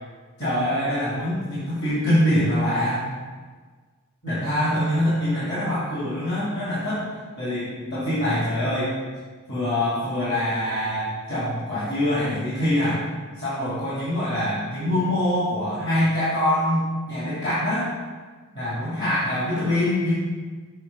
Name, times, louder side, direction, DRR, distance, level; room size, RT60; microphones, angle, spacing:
voice 1, 0.4-3.1 4.2-7.1 7.4-8.9 9.5-13.0 13.4-17.9 18.5-20.1, left 1 dB, 55° left, -10 dB, 2.0 m, -24 dB
6.8 x 3.6 x 5.2 m, 1.5 s
head